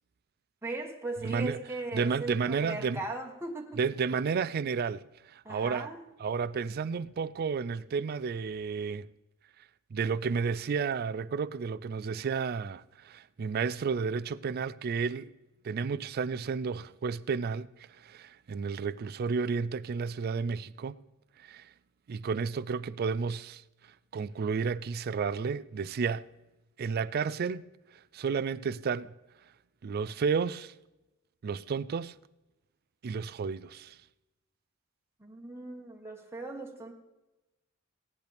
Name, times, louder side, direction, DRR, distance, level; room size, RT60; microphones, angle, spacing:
voice 1, 0.6-3.8 5.4-6.0 35.2-36.9, right 2 dB, 10° right, 1.2 m, -38 dB
voice 2, 1.2-1.6 1.9-3.0 3.8-5.0 5.3-5.9 6.2-9.1 9.9-15.3 15.6-17.7 18.0-21.0 21.4-21.7 22.1-23.6 24.1-26.3 26.8-27.7 28.1-29.1 29.8-30.7 31.4-32.1 33.0-34.0, right 5 dB, 50° right, 0.4 m, -32 dB
16.5 x 10.5 x 3.4 m
head